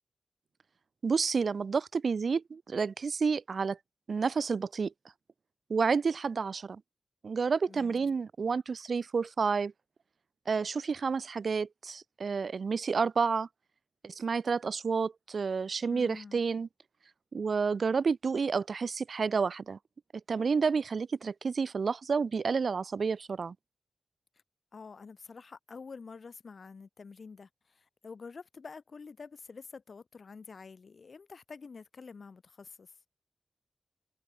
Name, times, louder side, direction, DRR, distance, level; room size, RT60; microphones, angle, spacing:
voice 1, 1.0-3.8 4.1-4.9 5.7-6.8 7.2-9.7 10.5-13.5 14.0-16.7 17.3-19.8 20.3-23.5, right 5 dB, 65° right, 1.2 m, -30 dB
voice 2, 15.9-16.4 24.7-32.9, left 5 dB, 60° left, 3.3 m, -48 dB
wide cardioid pair, 90°, 0 cm